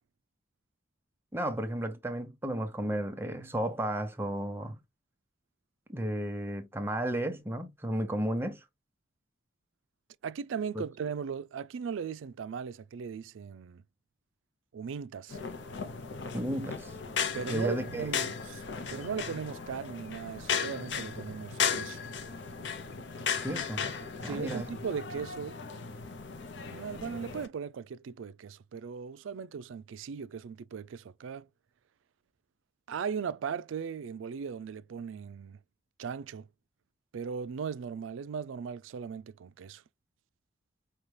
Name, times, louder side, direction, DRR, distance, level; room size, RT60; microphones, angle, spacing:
voice 1, 1.3-4.8 5.9-8.6 10.7-10.8 16.3-16.9 17.5-18.1 23.4-23.8 24.2-24.7, right 1 dB, 10° right, 0.7 m, -33 dB
voice 2, 10.2-13.8 14.7-15.4 17.3-18.6 18.9-22.0 24.2-25.6 26.7-31.5 32.9-35.6 36.0-36.5 37.1-39.8, right 6 dB, 90° right, 0.4 m, -38 dB
sound 1, 15.3-27.5, left 6 dB, 70° left, 0.7 m, -36 dB
5.5 x 2.3 x 3.1 m
head